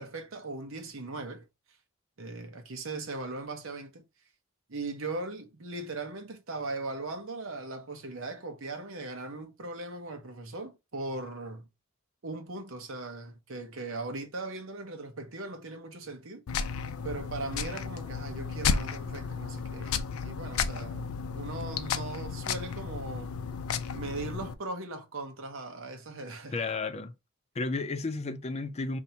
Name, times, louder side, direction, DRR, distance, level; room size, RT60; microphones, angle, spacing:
voice 1, 0.0-1.4 2.2-4.0 4.7-11.7 12.2-16.4 17.0-23.3 23.9-26.6, right 2 dB, 70° right, 0.9 m, -39 dB
sound 1, 16.5-24.5, left 6 dB, 85° left, 0.5 m, -33 dB
voice 2, 26.5-27.1 27.6-29.0, left 3 dB, 30° left, 0.4 m, -32 dB
2.8 x 2.7 x 4.4 m
head